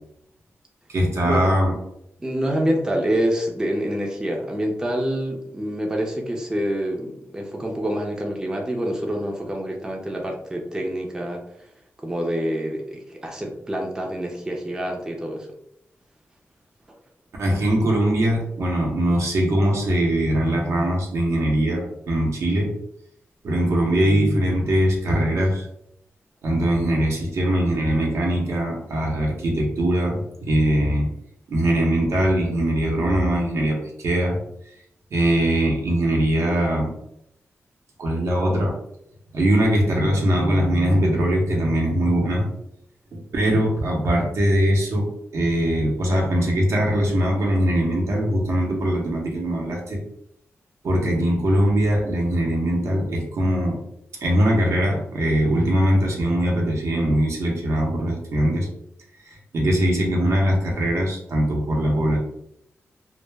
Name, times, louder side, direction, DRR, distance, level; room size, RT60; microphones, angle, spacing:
voice 1, 0.9-1.7 17.4-22.7 23.4-25.6 26.4-31.1 31.5-34.4 35.1-36.9 38.0-38.8 39.3-42.5 43.1-45.1 45.3-50.0 50.8-53.8 54.2-58.7 59.2-62.2, equal, 75° right, -1 dB, 0.7 m, -21 dB
voice 2, 2.2-11.4 12.0-15.5, equal, 15° right, 0 dB, 0.4 m, -26 dB
2.2 x 2.0 x 3.2 m, 0.77 s
wide cardioid pair, 125°, 5 cm